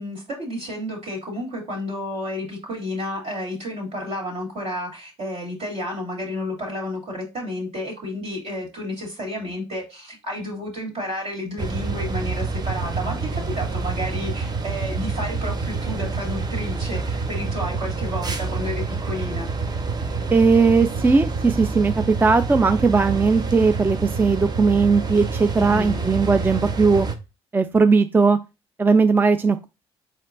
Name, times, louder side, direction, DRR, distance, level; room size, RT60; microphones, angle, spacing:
voice 1, 0.0-19.5 25.5-26.1, left 1 dB, 60° right, -1 dB, 2.7 m, -31 dB
sound 1, 11.6-27.2, right 4 dB, 35° right, 0.7 m, -27 dB
voice 2, 20.3-27.1 27.5-28.4 28.8-29.7, right 4 dB, 15° right, 10 dB, 0.4 m, -18 dB
4.7 x 4.3 x 2.5 m, 0.27 s
supercardioid pair, 65°, 13 cm